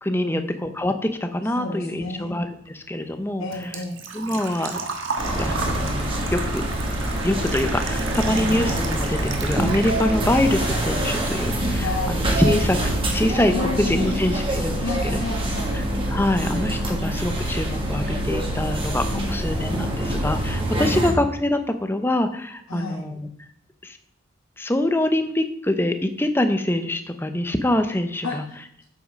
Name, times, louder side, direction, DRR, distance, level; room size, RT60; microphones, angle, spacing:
voice 1, 0.0-3.7 4.1-4.8 5.4-6.6 7.2-12.8 13.1-13.5 13.8-15.2 15.7-23.3 23.8-24.0 24.6-28.4, left 1 dB, 10° left, 8 dB, 0.7 m, -25 dB
voice 2, 1.5-2.4 3.4-4.0 11.8-12.2 13.5-14.2 14.8-15.8 16.9-17.1 19.1-19.3 20.8-21.2 22.7-23.0 28.2-28.8, left 2 dB, 80° left, -2 dB, 1.5 m, -31 dB
Engine / Trickle dribble / Fill (with liquid), 2.6-10.5 10.8-11.8 12.1-12.2 14.1-14.2 14.4-14.7 15.1-15.2 15.4-15.5, right 4 dB, 65° right, 1.5 m, -34 dB
sound 1, 5.2-21.1, right 1 dB, 25° right, 1.8 m, -25 dB
8.0 x 7.8 x 5.2 m, 0.71 s
head